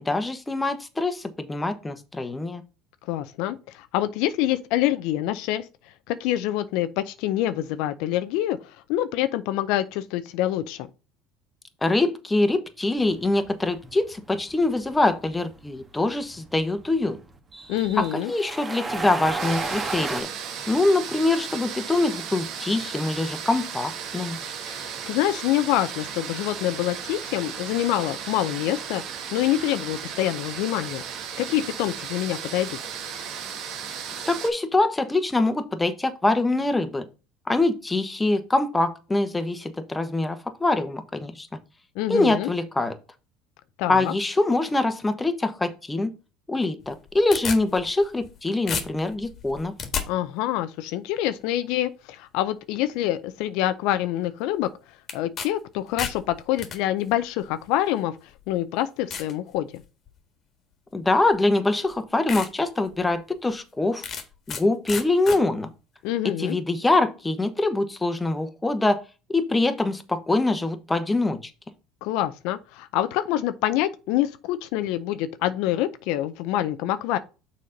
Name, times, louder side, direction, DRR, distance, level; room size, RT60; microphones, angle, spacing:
voice 1, 0.0-2.6 11.8-17.2 18.0-20.3 20.7-24.4 34.3-37.1 37.5-41.5 42.1-43.0 43.9-46.1 46.5-49.7 60.9-64.0 64.5-65.7 66.2-69.0 69.3-71.4, left 2 dB, 15° left, 1.1 m, -24 dB
voice 2, 3.1-5.7 6.1-10.9 17.7-18.3 24.7-29.0 29.3-31.0 31.4-32.8 42.0-42.5 43.8-44.1 50.1-54.7 55.1-58.2 58.5-59.8 66.0-66.6 72.0-77.2, left 13 dB, 70° left, 0.5 m, -26 dB
sound 1, 13.0-20.2, right 3 dB, 25° right, 1.3 m, -34 dB
sound 2, 19.4-34.5, right 7 dB, 60° right, 1.4 m, -35 dB
sound 3, 46.8-48.4 48.7-50.1 55.1-55.5 55.8-56.8 57.7-57.8 58.4-58.5 59.1-59.3 59.8-60.2 61.3-61.4 61.9-62.0 62.3-62.5 62.9-63.0 64.0-64.6 64.9-65.4, left 6 dB, 45° left, 1.5 m, -32 dB
6.5 x 4.2 x 5.2 m
supercardioid pair, 90°, 0 cm